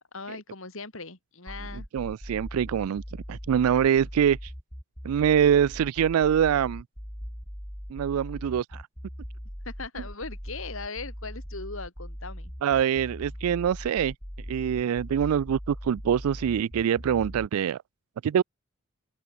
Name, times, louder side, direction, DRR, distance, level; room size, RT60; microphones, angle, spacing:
voice 1, 0.1-1.9 9.6-12.5, left 3 dB, 70° left, 3.4 m, -39 dB
sound 1, 1.5-17.5, equal, 10° left, 5.8 m, -40 dB
voice 2, 1.7-3.0 3.3-4.5 5.0-6.8 7.9-8.8 12.6-14.1 14.5-17.8 18.2-18.4, right 8 dB, 85° right, 0.3 m, -24 dB
open air
head